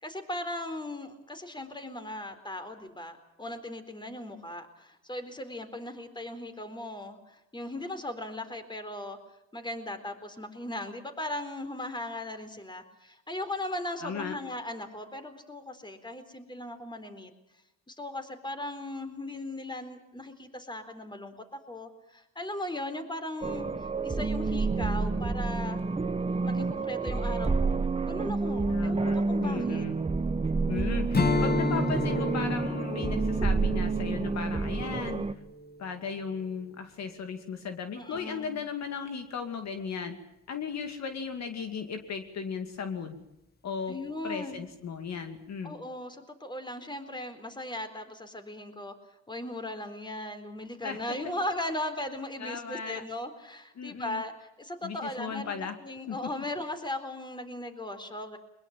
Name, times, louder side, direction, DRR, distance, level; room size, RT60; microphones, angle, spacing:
voice 1, 0.0-9.2 9.5-17.3 17.9-23.7 24.0-25.8 26.4-29.9 38.0-38.6 43.9-44.6 45.6-48.9 49.3-58.4, left 1 dB, 15° left, 8 dB, 4.1 m, -38 dB
voice 2, 14.0-14.4 28.7-30.0 30.7-35.3 35.8-40.2 40.5-43.2 43.6-44.0 44.2-45.7 50.8-51.0 52.4-53.0 53.8-54.2 54.8-55.7 56.1-56.2, left 6 dB, 60° left, 7 dB, 2.4 m, -36 dB
sound 1, 23.4-35.3, right 3 dB, 20° right, 1.2 m, -29 dB
Strum, 31.1-35.8, left 2 dB, 30° left, 1.9 m, -31 dB
22.0 x 21.5 x 7.4 m, 0.91 s
cardioid pair, 90°, 30 cm